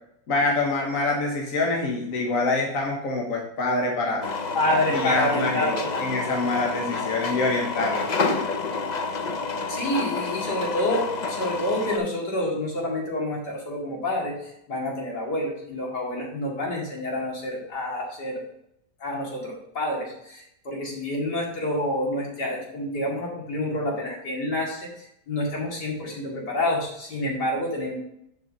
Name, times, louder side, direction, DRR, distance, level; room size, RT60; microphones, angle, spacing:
voice 1, 0.3-4.3 4.7-8.1, left 2 dB, 50° left, 1 dB, 1.5 m, -26 dB
sound 1, 4.2-12.0, left 4 dB, 85° left, 0.3 m, -29 dB
voice 2, 4.5-5.9 9.7-14.4 14.7-18.4 19.0-24.9 25.3-28.0, left 1 dB, 70° left, -2 dB, 3.0 m, -28 dB
7.6 x 5.4 x 5.5 m, 0.75 s
omnidirectional pair, 1.9 m